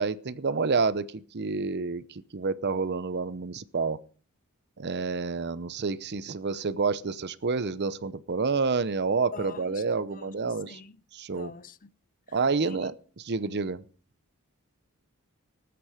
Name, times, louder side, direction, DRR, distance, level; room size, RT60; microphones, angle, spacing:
voice 1, 0.0-4.0 4.8-10.8 11.1-11.5 12.3-13.8, right 4 dB, 50° right, 0.7 m, -29 dB
voice 2, 9.3-9.8 10.2-10.9 11.3-11.9 12.6-12.8, left 5 dB, 40° left, 0.6 m, -45 dB
18.0 x 9.5 x 4.9 m
head